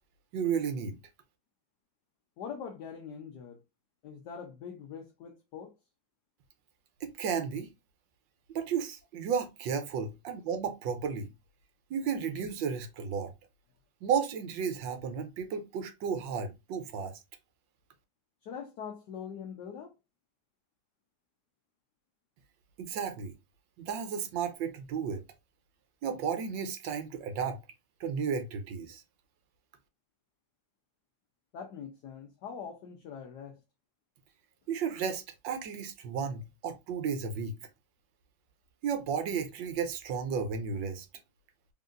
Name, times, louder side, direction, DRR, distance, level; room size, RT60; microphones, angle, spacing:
voice 1, 0.3-1.0 7.0-7.7 8.5-11.3 11.9-13.3 14.0-17.1 22.8-23.3 23.8-25.2 26.0-27.6 28.0-29.0 34.7-37.6 38.8-41.1, right 6 dB, 75° right, 1.4 m, -33 dB
voice 2, 2.4-3.6 4.0-5.7 18.4-19.9 31.5-33.6, left 7 dB, 65° left, 1.3 m, -43 dB
4.1 x 3.6 x 2.4 m
omnidirectional pair, 2.1 m